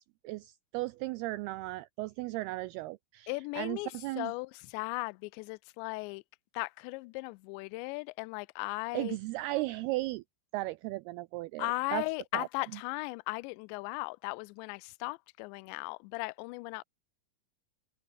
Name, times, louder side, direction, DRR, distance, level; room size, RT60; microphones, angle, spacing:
voice 1, 0.2-4.3 8.9-10.2 10.5-12.0 12.3-12.5, right 19 dB, 85° right, 2.3 m, -36 dB
voice 2, 3.3-6.2 6.5-9.2 11.6-16.8, left 26 dB, 85° left, 2.8 m, -37 dB
omnidirectional pair, 5.0 m